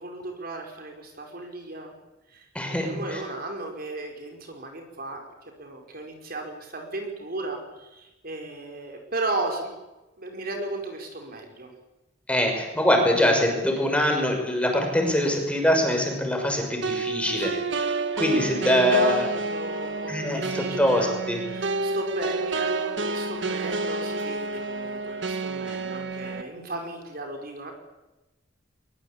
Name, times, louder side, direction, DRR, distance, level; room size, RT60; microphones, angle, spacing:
voice 1, 0.0-1.9 2.3-5.3 5.6-9.8 10.2-11.7 17.3-17.7 18.3-21.2 21.4-27.7, right 2 dB, 50° right, 3 dB, 4.9 m, -35 dB
voice 2, 2.5-3.2 12.3-17.9 18.2-19.3 20.1-21.4, left 1 dB, 5° left, 2 dB, 6.1 m, -23 dB
sound 1, 16.8-26.4, right 3 dB, 70° right, 1.8 m, -30 dB
23.0 x 22.5 x 8.6 m, 1.0 s
head